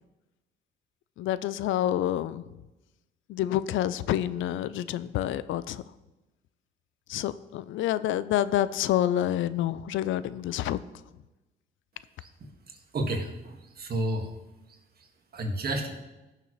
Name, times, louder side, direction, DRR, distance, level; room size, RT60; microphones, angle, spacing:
voice 1, 1.2-2.4 3.3-5.8 7.1-10.8, left 12 dB, 80° left, 16 dB, 0.4 m, -28 dB
voice 2, 12.7-14.3 15.3-15.9, right 1 dB, 50° right, 3 dB, 1.9 m, -31 dB
16.0 x 6.7 x 3.1 m, 1.1 s
cardioid pair, 90°, 20 cm